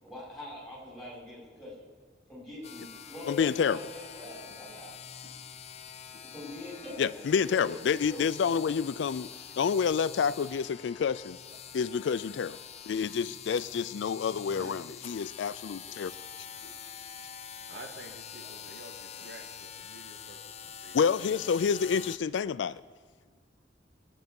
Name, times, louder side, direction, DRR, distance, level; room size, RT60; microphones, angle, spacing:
voice 1, 0.0-1.9 2.3-5.0 6.2-8.6, left 1 dB, ahead, 6.0 m, -44 dB
sound 1, 2.6-22.2, left 8 dB, 35° left, 0.6 m, -46 dB
sound 2, 2.9-3.1 3.8-4.0 4.4-4.7 5.2-5.4 6.1-6.4 6.9-7.1 7.3-7.5 7.9-8.2 8.7-9.5 10.0-10.4 10.7-10.9 11.5-11.8 12.3-12.7 13.5-13.9 14.6-15.0 15.8-16.1 16.6-16.9 17.7-18.0 18.4-18.8 19.2-19.5, right 1 dB, 45° right, 2.2 m, -59 dB
voice 2, 3.3-3.8 7.0-9.3 9.6-11.4 11.7-12.6 12.9-16.1 20.9-22.8, left 6 dB, 75° left, 0.4 m, -28 dB
voice 3, 14.5-14.8 17.7-21.3 21.8-21.9, right 2 dB, 65° right, 1.7 m, -50 dB
23.0 x 9.0 x 5.3 m
head